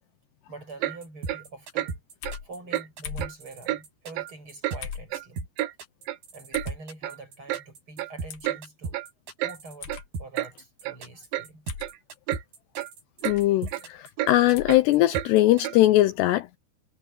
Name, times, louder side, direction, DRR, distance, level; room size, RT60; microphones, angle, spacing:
voice 1, 0.5-2.0 2.4-5.5 6.3-9.0 9.4-11.7 13.6-13.7, right 3 dB, 25° right, 8.5 m, -45 dB
Clock, 0.8-1.0 1.3-1.4 1.8-1.9 2.2-2.4 2.7-2.9 3.2-3.3 3.7-3.8 4.2-4.3 4.6-4.8 5.1-5.7 6.1-6.2 6.5-6.7 7.0-7.2 7.5-7.6 8.0-8.1 8.4-8.6 8.9-9.1 9.4-9.6 9.9-10.0 10.3-10.5 10.8-11.0 11.3-11.5 11.8-12.0 12.3-12.4 12.8-12.9 13.2-13.4 13.7-13.8 14.2-14.3 14.7-14.8 15.1-15.3 15.6-15.8, right 15 dB, 80° right, 3.6 m, -30 dB
sound 1, 1.0-15.6, right 4 dB, 55° right, 9.2 m, -38 dB
sound 2, 2.2-2.5 3.0-3.3 4.8-5.1 6.5-6.8 8.3-8.5 9.8-10.1 11.7-11.9 13.2-13.5 14.5-14.8, left 7 dB, 55° left, 2.8 m, -38 dB
voice 2, 13.3-16.5, left 15 dB, 80° left, 2.7 m, -21 dB
omnidirectional pair, 5.2 m